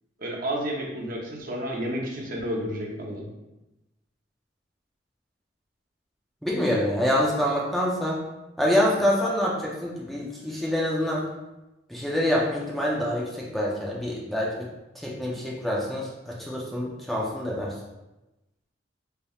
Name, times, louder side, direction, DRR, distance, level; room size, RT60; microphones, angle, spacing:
voice 1, 0.2-3.3, equal, 50° right, -1 dB, 0.8 m, -31 dB
voice 2, 6.4-8.2 8.6-11.3 11.9-14.7 15.0-17.7, left 1 dB, ahead, -5 dB, 0.5 m, -26 dB
4.0 x 3.4 x 2.3 m, 0.99 s
head